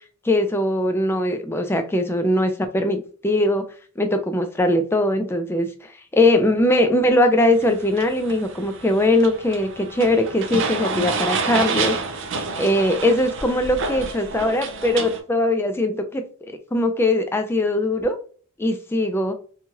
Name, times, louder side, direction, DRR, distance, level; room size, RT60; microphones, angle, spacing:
voice 1, 0.2-3.6 4.0-12.0 12.6-16.2 16.7-18.2 18.6-19.3, left 1 dB, 10° left, 0.3 m, -21 dB
sound 1, 7.6-15.2, right 4 dB, 60° right, 0.5 m, -29 dB
3.0 x 2.3 x 2.7 m
head